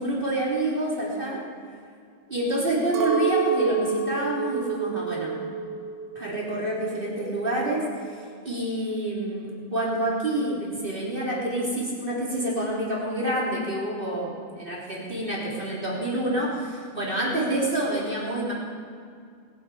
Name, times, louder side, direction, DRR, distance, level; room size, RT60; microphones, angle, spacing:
voice 1, 0.0-1.4 2.3-5.4 6.1-8.2 8.4-18.5, right 1 dB, 15° right, -6 dB, 2.8 m, -28 dB
Chink clink, 2.9-7.3 7.6-8.4, right 6 dB, 70° right, 2.9 m, -29 dB
21.5 x 11.0 x 5.0 m, 2.2 s
omnidirectional pair, 5.2 m